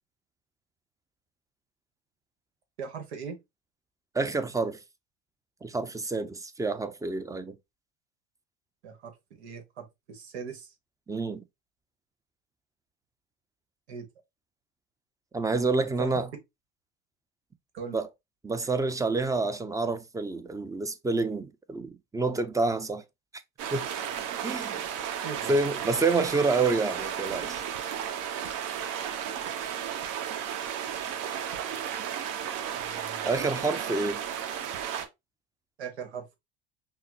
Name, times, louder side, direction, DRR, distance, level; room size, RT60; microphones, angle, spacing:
voice 1, 2.8-3.4 8.8-10.7 13.9-14.1 16.0-16.1 17.7-18.0 25.2-25.9 32.7-33.3 35.8-36.4, right 6 dB, 85° right, 1.1 m, -40 dB
voice 2, 4.1-4.8 5.6-7.5 11.1-11.4 15.3-16.3 17.9-18.1 18.4-23.0 23.7-23.9 24.4-24.8 25.5-27.6 33.2-34.2, right 3 dB, 10° right, 0.5 m, -28 dB
sound 1, 23.6-35.1, right 9 dB, 60° right, 1.1 m, -34 dB
5.6 x 2.1 x 2.9 m
hypercardioid pair, 80°, 32 cm